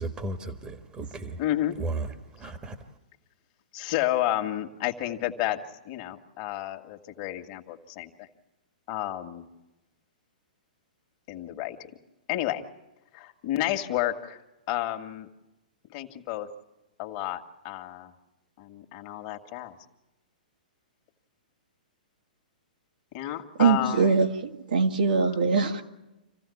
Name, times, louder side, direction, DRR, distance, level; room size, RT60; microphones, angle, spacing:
voice 1, 0.0-1.4 1.8-2.9, right 3 dB, 20° right, 7 dB, 1.6 m, -35 dB
voice 2, 1.4-1.8 3.7-5.6 5.8-8.3 8.9-9.5 11.3-11.8 12.3-12.6 13.1-14.4 14.7-15.3 15.9-16.5 17.0-18.1 18.6-19.8 23.1-24.2, left 14 dB, 40° left, 5 dB, 2.1 m, -31 dB
voice 3, 23.6-25.8, right 5 dB, 75° right, 3 dB, 2.3 m, -23 dB
28.0 x 15.5 x 8.7 m, 1.0 s
hypercardioid pair, 115°, 5 cm